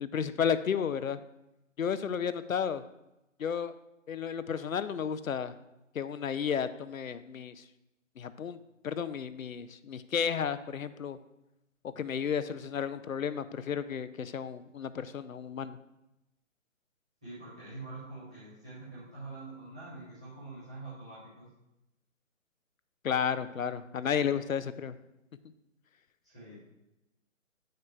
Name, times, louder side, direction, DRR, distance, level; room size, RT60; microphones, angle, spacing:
voice 1, 0.0-1.2 1.8-2.8 3.4-3.7 4.1-5.5 5.9-7.6 8.2-8.6 8.8-11.2 12.0-15.8 23.0-24.9, left 7 dB, 90° left, 13 dB, 0.5 m, -32 dB
voice 2, 17.2-21.5 26.2-26.6, right 3 dB, 5° right, -12 dB, 0.5 m, -45 dB
9.0 x 6.5 x 2.3 m, 0.92 s
figure-of-eight pair, 145°, 40 cm